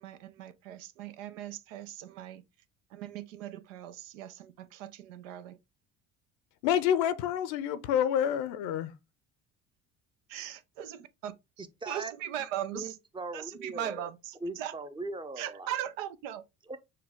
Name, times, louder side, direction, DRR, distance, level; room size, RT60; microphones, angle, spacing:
voice 1, 0.0-2.4 2.9-5.6 10.3-13.0 13.3-14.7 15.4-16.4, right 11 dB, 75° right, 0.7 m, -39 dB
voice 2, 6.6-8.9, left 9 dB, 65° left, 0.7 m, -28 dB
voice 3, 11.8-12.1 12.7-14.1 14.4-15.7 16.7-16.8, right 2 dB, 10° right, 0.6 m, -39 dB
6.6 x 2.2 x 3.5 m
hypercardioid pair, 65°, 39 cm